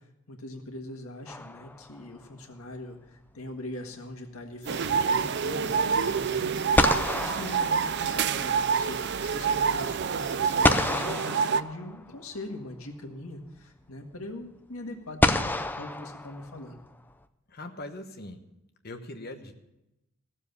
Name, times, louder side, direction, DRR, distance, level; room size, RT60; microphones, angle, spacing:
voice 1, 0.3-6.6 7.1-15.5 15.8-16.8, left 1 dB, 85° left, 3 dB, 1.8 m, -41 dB
sound 1, 1.3-2.1 6.2-6.3 6.7-8.5 10.6-12.2 13.6-13.7 15.2-16.8, left 2 dB, 10° left, 0.5 m, -28 dB
sound 2, 4.6-10.7, right 2 dB, 35° right, 3.5 m, -46 dB
sound 3, 4.7-11.6, right 6 dB, 50° right, 0.4 m, -27 dB
voice 2, 17.5-18.4 18.8-19.5, left 2 dB, 45° left, 6 dB, 1.1 m, -41 dB
15.5 x 7.3 x 6.9 m, 0.91 s
head